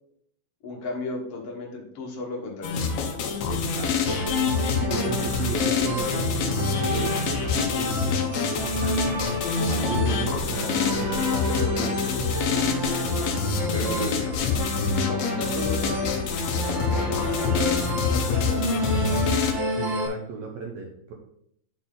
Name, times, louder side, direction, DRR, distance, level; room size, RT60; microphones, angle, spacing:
voice 1, 0.6-3.0 10.0-12.5 13.7-14.4 15.1-16.3 16.8-19.1, left 3 dB, 60° left, 0 dB, 1.7 m, -35 dB
sound 1, 2.6-19.5, left 6 dB, 90° left, 1.5 m, -26 dB
voice 2, 3.5-4.2 4.9-8.6 9.7-12.0 13.4-14.3 19.7-21.1, right 5 dB, 85° right, 1 dB, 1.5 m, -35 dB
sound 2, 4.1-20.1, right 1 dB, 50° right, 1.5 m, -30 dB
10.5 x 4.3 x 3.8 m, 0.70 s
omnidirectional pair, 4.4 m